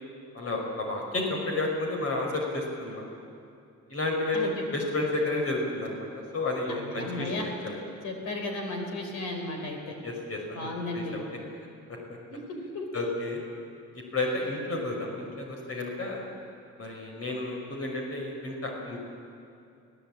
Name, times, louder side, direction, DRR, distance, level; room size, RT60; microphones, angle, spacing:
voice 1, 0.3-3.0 3.9-7.8 10.0-11.4 11.9-12.0 12.9-13.4 13.9-16.3 16.8-19.0, left 2 dB, 50° left, 0 dB, 5.5 m, -31 dB
voice 2, 6.7-7.5 8.0-9.9 10.5-11.2 12.3-12.4 12.7-12.9, left 2 dB, 85° left, 3 dB, 4.4 m, -34 dB
23.5 x 16.5 x 8.8 m, 2.5 s
cardioid pair, 90°, 30 cm